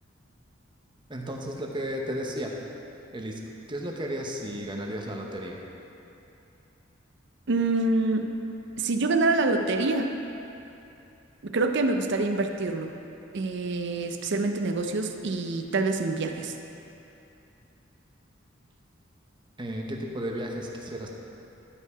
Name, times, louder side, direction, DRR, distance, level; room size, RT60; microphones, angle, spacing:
voice 1, 1.1-2.7 3.1-3.4 3.7-5.6 19.6-21.1, equal, 25° right, 0 dB, 0.9 m, -33 dB
voice 2, 7.5-8.3 8.8-10.2 11.4-12.9 13.3-16.6, right 3 dB, 60° right, 6 dB, 0.6 m, -26 dB
11.5 x 5.5 x 4.8 m, 2.8 s
head